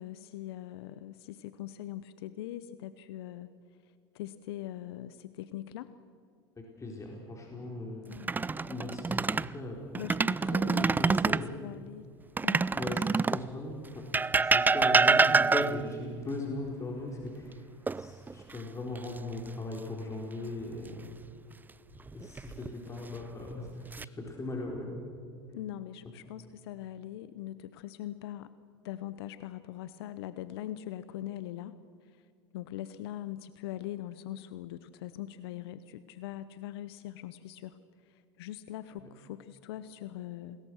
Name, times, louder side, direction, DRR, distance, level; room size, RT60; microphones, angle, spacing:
voice 1, 0.0-3.5 4.1-5.9 8.1-8.3 10.0-12.1 12.4-12.7 25.5-28.5 28.8-31.7 32.0-32.2 32.5-37.8 38.1-40.6, left 13 dB, 75° left, 14 dB, 0.8 m, -42 dB
voice 2, 6.8-8.1 8.6-9.8 10.4-11.7 12.8-14.0 14.4-17.6 17.9-21.1 22.1-24.9 39.0-39.1, left 2 dB, 20° left, 0 dB, 4.5 m, -38 dB
sound 1, 8.1-9.5 10.0-11.5 12.4-13.5 14.1-16.0 17.9-18.6 19.0-19.2 22.1-22.7 23.4-24.1, right 4 dB, 15° right, 0.5 m, -26 dB
28.5 x 20.5 x 6.4 m, 2.4 s
hypercardioid pair, 85°, 13 cm